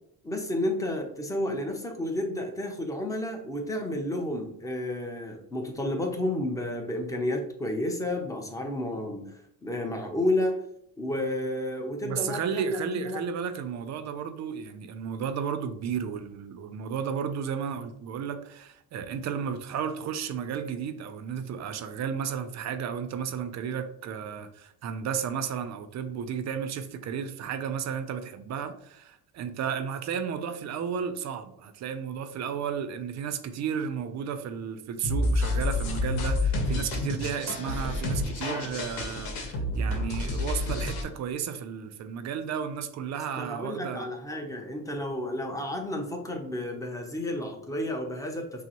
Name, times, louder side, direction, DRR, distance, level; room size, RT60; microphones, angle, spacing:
voice 1, 0.2-9.3 9.6-10.6 11.0-13.2 43.4-48.6, left 1 dB, 10° left, 0.6 m, -31 dB
voice 2, 12.0-44.1, right 7 dB, 50° right, 0.5 m, -33 dB
sound 1, 35.0-41.0, left 2 dB, 80° left, 1.0 m, -29 dB
5.8 x 2.0 x 2.9 m
cardioid pair, 120°, 36 cm